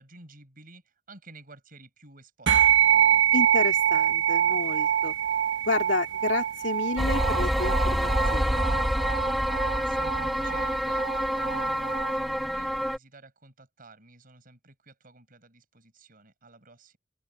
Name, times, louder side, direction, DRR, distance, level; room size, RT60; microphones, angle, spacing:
voice 1, 0.0-3.2 9.8-17.0, right 2 dB, 50° right, 6.8 m, -51 dB
sound 1, 2.5-12.1, right 10 dB, 85° right, 1.3 m, -25 dB
voice 2, 3.3-5.1 5.7-8.7, left 3 dB, 75° left, 2.9 m, -30 dB
sound 2, 7.0-13.0, equal, ahead, 1.2 m, -27 dB
open air
head